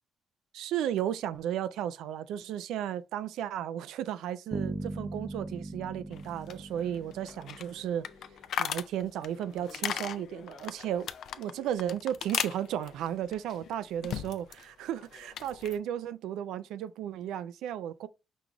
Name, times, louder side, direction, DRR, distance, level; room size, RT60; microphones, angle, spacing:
voice 1, 0.5-8.1 8.6-11.1 11.4-18.1, right 10 dB, 85° right, 0.3 m, -34 dB
Bass guitar, 4.5-8.3, right 2 dB, 15° right, 0.5 m, -39 dB
sound 1, 6.1-14.7 14.9-15.8, left 9 dB, 70° left, 0.4 m, -38 dB
5.2 x 2.4 x 2.9 m
cardioid pair, 90°, 0 cm